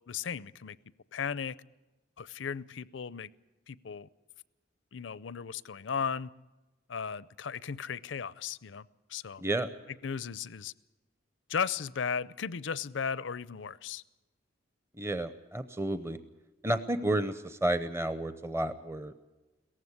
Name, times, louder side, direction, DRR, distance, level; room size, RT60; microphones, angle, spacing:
voice 1, 0.1-0.8 1.1-1.6 2.2-3.3 3.7-4.1 4.9-6.3 6.9-9.4 10.0-10.7 11.5-14.0, left 6 dB, 75° left, 19 dB, 0.5 m, -36 dB
voice 2, 9.4-9.7 15.0-16.2 16.6-19.1, right 1 dB, 15° right, 11 dB, 0.7 m, -31 dB
18.0 x 15.0 x 9.6 m, 1.1 s
head